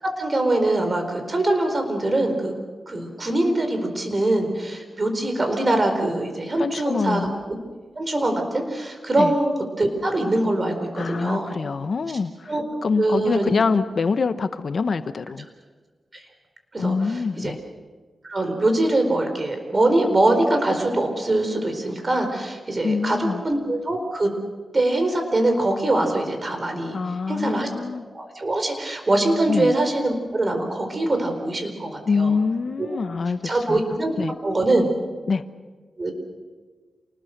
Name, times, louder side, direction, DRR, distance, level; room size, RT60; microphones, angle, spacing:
voice 1, 0.0-2.5 2.9-7.3 8.0-9.5 9.8-11.5 12.5-12.6 13.0-13.5 16.1-16.2 16.7-17.5 18.3-24.3 24.7-27.0 27.3-27.7 28.1-32.3 32.8-32.9 33.4-34.1 34.4-34.9 36.0-36.1, right 2 dB, 35° right, 5 dB, 4.5 m, -23 dB
voice 2, 6.6-7.3 9.2-9.3 11.0-12.5 12.8-15.5 16.8-17.6 22.8-23.4 26.9-28.0 29.5-29.7 32.1-33.8 34.2-34.3 35.3-35.4, left 4 dB, 60° left, 12 dB, 0.8 m, -25 dB
28.0 x 20.0 x 6.6 m, 1.4 s
wide cardioid pair, 90°, 0 cm